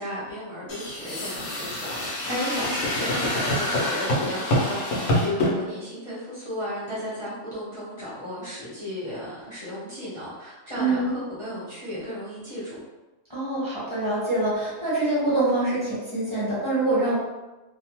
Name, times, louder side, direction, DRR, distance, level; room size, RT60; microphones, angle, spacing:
voice 1, 0.0-12.8, equal, 30° left, -10 dB, 0.7 m, -34 dB
sound 1, 0.7-5.5, left 1 dB, 90° left, 1.1 m, -26 dB
voice 2, 2.2-2.7 10.8-11.1 13.3-17.2, right 2 dB, 25° right, -10 dB, 0.9 m, -25 dB
2.7 x 2.1 x 2.9 m, 1.1 s
omnidirectional pair, 1.3 m